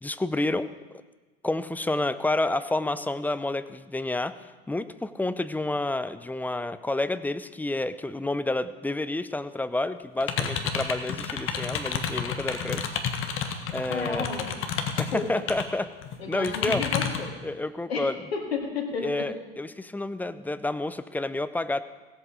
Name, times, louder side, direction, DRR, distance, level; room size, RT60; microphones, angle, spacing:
voice 1, 0.0-1.0 1.4-12.8 13.7-14.3 15.0-15.9 16.3-16.8 17.4-18.2 19.0-21.8, left 2 dB, 5° left, 13 dB, 0.5 m, -29 dB
sound 1, 10.2-15.6 16.0-17.3, left 7 dB, 45° left, 1.5 m, -30 dB
voice 2, 13.9-14.5 14.9-15.3 16.2-17.4 17.9-19.3, left 5 dB, 85° left, 2 dB, 1.9 m, -32 dB
17.0 x 8.1 x 4.9 m, 1.2 s
hypercardioid pair, 85°, 30 cm